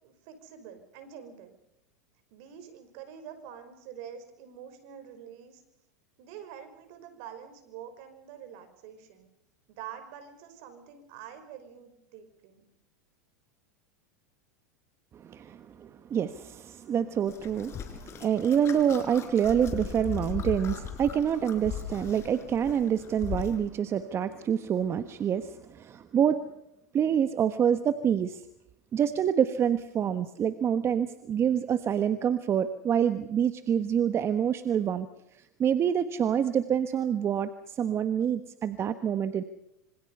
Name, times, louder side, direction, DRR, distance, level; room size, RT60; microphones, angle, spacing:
voice 1, 0.0-1.5 2.3-5.6 6.2-9.3 9.7-12.7, right 8 dB, 55° right, 9 dB, 5.5 m, -46 dB
voice 2, 15.1-26.4 26.9-28.4 28.9-35.1 35.3-39.4, right 8 dB, 30° right, 11 dB, 1.3 m, -27 dB
sound 1, 17.3-23.6, left 8 dB, 30° left, 4.4 m, -38 dB
26.5 x 25.5 x 5.6 m, 0.81 s
hypercardioid pair, 110°, 9 cm